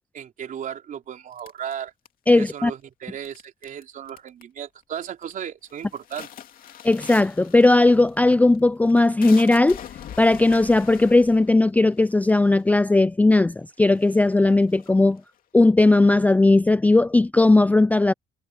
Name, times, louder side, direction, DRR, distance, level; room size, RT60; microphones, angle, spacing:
voice 1, 0.1-1.9 2.4-6.3, right 9 dB, 50° right, 3.9 m, -35 dB
sound 1, 1.4-2.5 3.2-3.8 4.1-4.6 5.0-5.3 5.7-12.7 13.4-13.5 13.8-15.4, left 10 dB, 55° left, 2.6 m, -43 dB
voice 2, 2.3-2.7 6.8-9.8 10.2-15.2 15.5-18.1, left 2 dB, 10° left, 0.4 m, -17 dB
cardioid pair, 110°, 17 cm